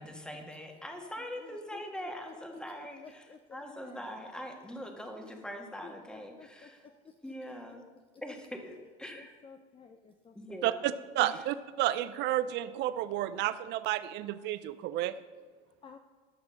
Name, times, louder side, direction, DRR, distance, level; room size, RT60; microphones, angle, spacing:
voice 1, 0.0-6.9 7.2-7.8 8.2-9.3 10.3-10.8 11.2-11.4, equal, 5° left, 3 dB, 1.6 m, -43 dB
voice 2, 1.2-2.6 3.0-4.2 5.2-5.3 5.8-7.1 9.1-10.9 14.9-15.0 15.8-16.0, left 5 dB, 25° left, 6 dB, 0.7 m, -54 dB
voice 3, 11.1-15.2, right 13 dB, 60° right, 13 dB, 0.6 m, -31 dB
12.0 x 6.2 x 6.4 m, 1.4 s
supercardioid pair, 105°, 20 cm